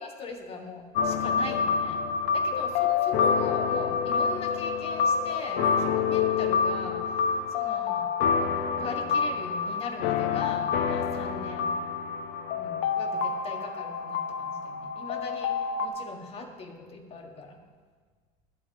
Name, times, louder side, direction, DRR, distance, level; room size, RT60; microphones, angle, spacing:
voice 1, 0.0-2.0 2.3-7.1 7.5-8.5 8.7-11.7 12.5-17.6, left 3 dB, 35° left, 3 dB, 1.8 m, -40 dB
sound 1, 0.9-15.9, left 6 dB, 75° left, 1.0 m, -27 dB
11.5 x 5.5 x 8.9 m, 1.5 s
cardioid pair, 130°, 16 cm